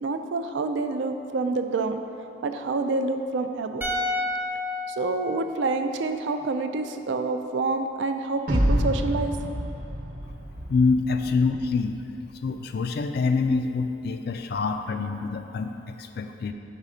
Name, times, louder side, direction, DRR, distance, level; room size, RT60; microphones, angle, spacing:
voice 1, 0.0-2.0 2.4-3.9 4.9-9.3, right 3 dB, 65° right, 7 dB, 0.3 m, -27 dB
sound 1, 3.8-7.0 7.3-7.4, left 2 dB, 10° right, 0.5 m, -32 dB
sound 2, 8.5-11.8, equal, 45° right, 0.9 m, -28 dB
voice 2, 10.7-12.0 12.4-16.5, left 4 dB, 55° left, 7 dB, 0.3 m, -26 dB
5.5 x 4.1 x 4.9 m, 2.8 s
head